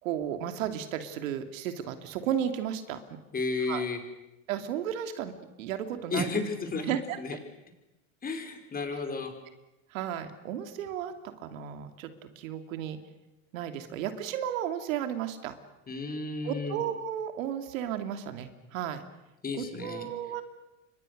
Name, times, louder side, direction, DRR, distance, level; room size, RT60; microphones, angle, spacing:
voice 1, 0.0-3.0 3.7-3.9 4.5-5.3 5.6-6.3 6.9-7.2 8.9-9.0 9.9-11.1 11.4-13.0 13.5-15.5 16.4-19.0 19.5-20.4, right 10 dB, 80° right, 8 dB, 2.7 m, -34 dB
voice 2, 3.3-4.0 6.1-7.4 8.2-9.3 15.9-16.8 19.4-20.1, left 3 dB, 20° left, 6 dB, 5.0 m, -32 dB
29.5 x 24.5 x 6.6 m, 0.94 s
supercardioid pair, 115°, 39 cm